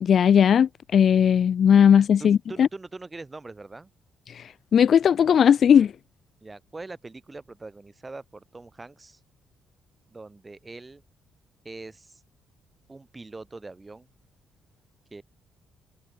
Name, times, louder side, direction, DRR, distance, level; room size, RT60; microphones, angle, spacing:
voice 1, 0.0-2.7 4.7-5.9, left 8 dB, 55° left, 0.5 m, -18 dB
voice 2, 2.1-3.9 6.4-9.2 10.1-11.0 11.6-12.2 12.9-14.1 15.1-15.2, right 3 dB, 20° right, 6.8 m, -42 dB
cardioid pair, 90°, 0 cm